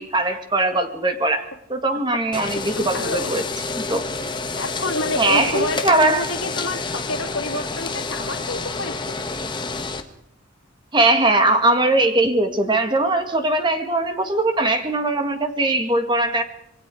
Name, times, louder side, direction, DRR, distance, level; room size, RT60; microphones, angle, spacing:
voice 1, 0.0-1.4 1.7-3.4 3.7-4.0 5.2-6.3 10.9-16.4, right 2 dB, 20° right, 6 dB, 2.0 m, -20 dB
sound 1, 2.3-10.0, left 3 dB, 20° left, 1.3 m, -29 dB
voice 2, 2.8-3.3 4.6-8.9, left 2 dB, 80° left, 3 dB, 2.7 m, -28 dB
26.5 x 22.0 x 4.9 m, 0.73 s
head